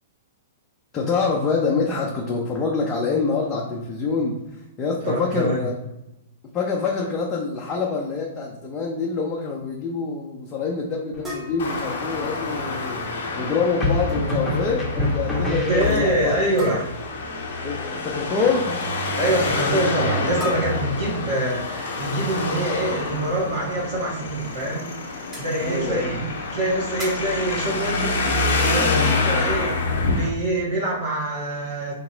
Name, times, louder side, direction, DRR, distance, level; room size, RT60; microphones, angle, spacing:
voice 1, 0.9-4.4 4.8-5.7 6.5-13.0 13.4-16.4 17.6-18.9 25.6-26.2, left 4 dB, 25° left, -2 dB, 0.6 m, -25 dB
voice 2, 5.0-5.7 15.4-16.9 19.2-26.2 26.5-32.0, right 1 dB, 55° right, -4 dB, 1.2 m, -25 dB
sound 1, 11.1-11.7 13.8-16.5, left 1 dB, 10° left, 1.0 m, -26 dB
sound 2, 11.2-12.6 13.9-14.2 14.5-14.8 15.1-15.2 16.6-17.2 20.4-21.6 23.6-23.7 24.3-24.4 25.2-25.6 27.0-27.4, left 2 dB, 10° right, 1.3 m, -37 dB
Traffic noise roadway noise, 11.6-30.3, left 3 dB, 60° left, 0.8 m, -27 dB
3.0 x 2.8 x 3.9 m, 0.94 s
figure-of-eight pair, 110°, 0 cm